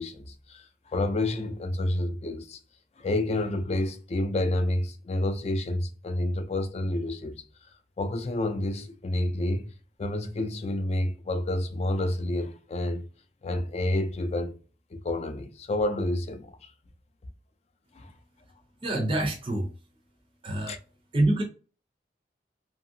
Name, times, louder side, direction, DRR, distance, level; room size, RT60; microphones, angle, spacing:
voice 1, 0.0-2.6 3.0-7.4 8.0-9.7 10.0-13.0 13.4-14.5 14.9-16.7 17.9-18.1 20.7-20.8, left 1 dB, 35° left, 0.4 m, -29 dB
voice 2, 18.8-19.7 20.4-20.8 21.1-21.4, right 1 dB, 30° right, 0.5 m, -26 dB
2.8 x 2.6 x 2.6 m
head